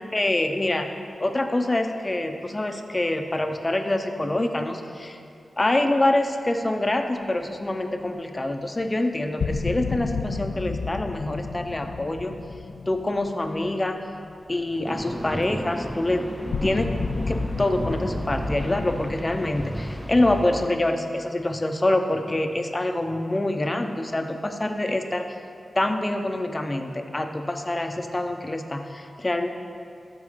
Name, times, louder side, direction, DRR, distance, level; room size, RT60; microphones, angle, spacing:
voice 1, 0.1-0.9 1.2-5.2 5.6-12.4 12.9-14.0 14.5-16.2 16.6-16.9 17.2-25.2 25.7-29.5, left 1 dB, 25° left, 6 dB, 0.8 m, -25 dB
sound 1, 9.4-14.5 14.8-14.9 16.5-20.0, left 4 dB, 80° left, 0.5 m, -32 dB
sound 2, 14.9-20.7, equal, ahead, 0.5 m, -32 dB
12.5 x 4.7 x 6.8 m, 2.6 s
wide cardioid pair, 70°, 0 cm